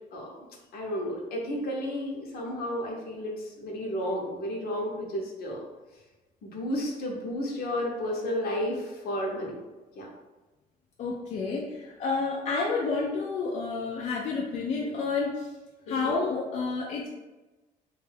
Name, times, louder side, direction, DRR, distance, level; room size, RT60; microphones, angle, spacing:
voice 1, 0.7-5.6 6.4-9.5 10.0-10.1 15.9-16.2, equal, 65° left, -1 dB, 0.8 m, -32 dB
voice 2, 11.0-15.5 15.9-17.1, left 4 dB, 45° left, -2 dB, 0.4 m, -30 dB
2.5 x 2.3 x 3.3 m, 1.1 s
cardioid pair, 110°, 17 cm